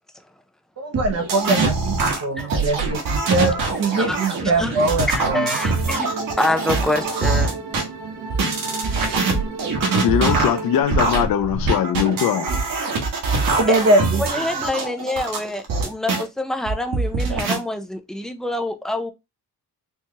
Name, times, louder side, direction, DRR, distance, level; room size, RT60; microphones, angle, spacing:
voice 1, 0.8-5.5 12.5-12.6 13.6-14.2, right 2 dB, 40° right, 0.7 m, -22 dB
sound 1, 0.9-7.8 8.3-16.2 16.7-17.6, right 3 dB, 60° right, 1.3 m, -23 dB
voice 2, 4.0-4.7 5.1-7.6 13.7-13.8 14.2-19.1, left 1 dB, ahead, 0.3 m, -26 dB
sound 2, 5.2-10.8, right 4 dB, 75° right, 1.2 m, -33 dB
voice 3, 10.0-12.5, left 10 dB, 65° left, 0.7 m, -20 dB
4.5 x 2.3 x 2.8 m
cardioid pair, 140°, 38 cm